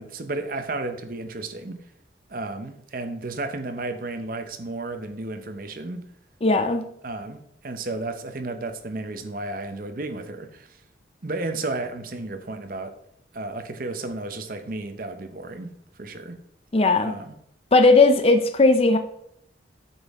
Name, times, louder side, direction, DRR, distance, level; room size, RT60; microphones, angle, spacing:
voice 1, 0.0-1.8 2.3-6.1 7.0-10.8 11.2-13.0 13.3-16.4 17.0-17.3, right 2 dB, 50° right, 0.8 m, -33 dB
voice 2, 6.4-6.8 16.7-17.1 17.7-19.0, left 3 dB, 30° left, 0.5 m, -17 dB
8.1 x 5.4 x 3.6 m
head